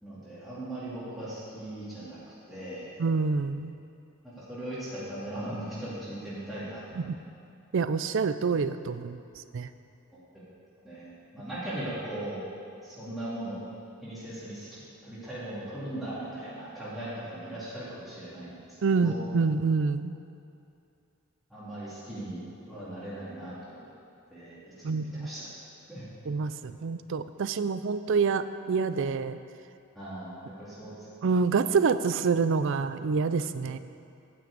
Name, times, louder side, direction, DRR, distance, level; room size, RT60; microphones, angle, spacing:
voice 1, 0.0-2.2 2.5-2.9 4.4-6.8 10.1-10.2 10.8-12.4 12.8-13.6 14.0-19.2 21.5-23.9 24.3-24.6 24.9-25.4 25.9-26.0 29.9-30.3 30.6-31.1, right 1 dB, ahead, -12 dB, 2.6 m, -39 dB
voice 2, 3.0-3.7 7.0-7.2 7.7-9.2 9.5-9.7 18.8-20.1 24.8-25.3 26.3-29.4 31.2-33.8, right 5 dB, 65° right, 12 dB, 0.4 m, -27 dB
9.2 x 6.2 x 8.4 m, 2.6 s
head